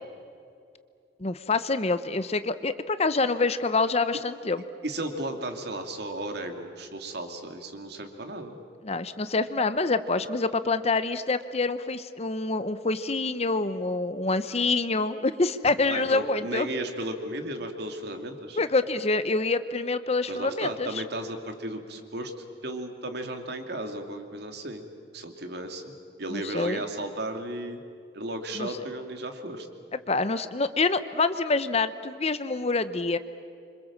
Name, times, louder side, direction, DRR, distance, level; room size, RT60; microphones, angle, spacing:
voice 1, 1.2-4.6 8.8-16.7 18.6-21.0 26.3-26.8 28.6-28.7 30.1-33.2, left 3 dB, 35° left, 12 dB, 0.9 m, -26 dB
voice 2, 4.8-8.6 15.9-18.6 20.3-22.3 22.6-24.8 25.1-25.9 26.2-27.8 28.1-29.7, right 1 dB, 60° right, 5 dB, 2.7 m, -34 dB
27.0 x 25.5 x 7.5 m, 2.5 s
head